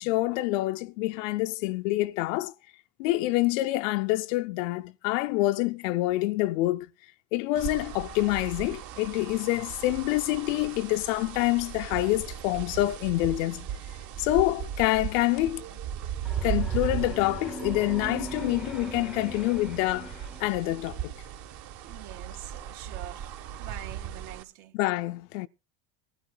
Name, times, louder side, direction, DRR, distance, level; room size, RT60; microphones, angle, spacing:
voice 1, 0.0-2.5 3.0-6.9 7.3-13.7 14.2-15.6 16.4-21.1 24.7-25.5, left 18 dB, 70° left, 0.5 m, -27 dB
sound 1, 7.5-24.4, right 9 dB, 45° right, 1.2 m, -37 dB
sound 2, 16.3-20.9, right 1 dB, ahead, 0.6 m, -40 dB
voice 2, 21.8-23.3 23.6-24.8, right 13 dB, 65° right, 1.7 m, -44 dB
19.5 x 12.0 x 2.2 m
cardioid pair, 175°, 40 cm